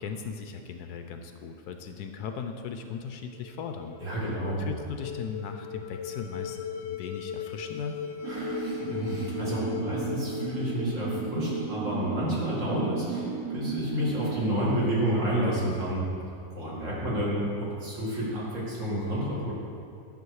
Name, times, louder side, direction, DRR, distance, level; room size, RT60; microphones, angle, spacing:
voice 1, 0.0-4.0 4.6-6.6 6.8-8.0, left 6 dB, 70° left, 6 dB, 1.0 m, -37 dB
sound 1, 3.2-12.4, left 8 dB, 85° left, 1.3 m, -39 dB
voice 2, 4.0-4.7 8.2-16.1 16.5-19.5, equal, 45° right, -6 dB, 2.5 m, -30 dB
sound 2, 8.2-14.8, right 7 dB, 70° right, 0.9 m, -35 dB
10.5 x 7.1 x 4.8 m, 2.5 s
omnidirectional pair, 2.0 m